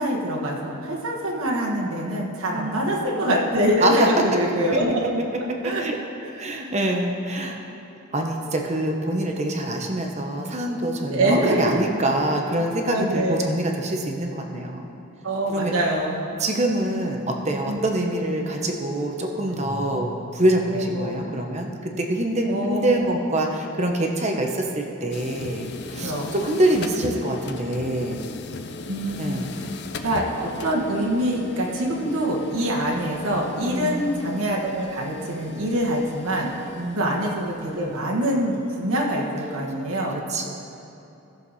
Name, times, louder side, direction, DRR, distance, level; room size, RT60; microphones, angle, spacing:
voice 1, 0.0-5.2 5.6-5.8 6.2-6.7 11.1-11.8 12.9-13.5 15.2-16.4 17.7-17.8 20.7-21.4 22.5-23.1 26.0-26.3 28.9-29.7 30.0-36.5 36.9-40.2, right 1 dB, 80° right, -3 dB, 1.5 m, -25 dB
voice 2, 5.6-6.0 6.4-7.6 8.1-14.8 15.5-15.7 16.4-28.2 29.2-29.5 33.6-34.0 36.7-37.1 40.3-40.5, right 1 dB, 30° right, 2 dB, 0.9 m, -25 dB
Keyboard (musical), 19.5-22.6, equal, 15° left, 2.4 m, -43 dB
sound 1, 25.1-39.4, left 3 dB, 50° left, 0.5 m, -38 dB
15.5 x 6.6 x 4.2 m, 2.9 s
head